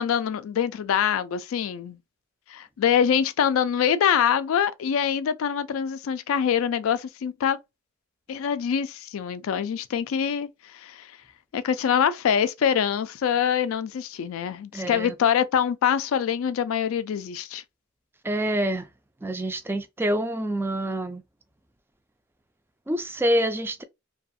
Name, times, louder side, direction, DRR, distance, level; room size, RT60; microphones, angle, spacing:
voice 1, 0.0-2.0 2.5-7.6 8.3-11.1 11.5-17.6, left 8 dB, 70° left, 0.3 m, -24 dB
voice 2, 14.7-15.2 18.2-18.9 19.2-21.2 22.9-23.8, right 1 dB, 10° right, 0.3 m, -26 dB
2.4 x 2.3 x 2.6 m
head